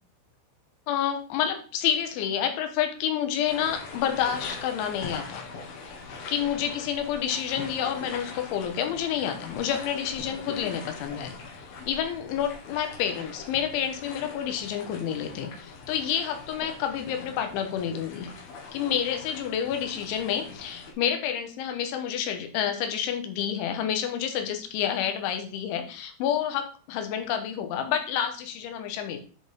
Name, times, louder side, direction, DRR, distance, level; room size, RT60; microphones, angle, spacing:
voice 1, 0.9-5.5 6.3-11.3 11.8-18.3 18.7-29.2, left 9 dB, 75° left, 6 dB, 3.2 m, -29 dB
sound 1, 3.5-20.9, left 4 dB, 60° left, 3.1 m, -42 dB
11.0 x 5.1 x 3.6 m, 0.38 s
omnidirectional pair, 6.0 m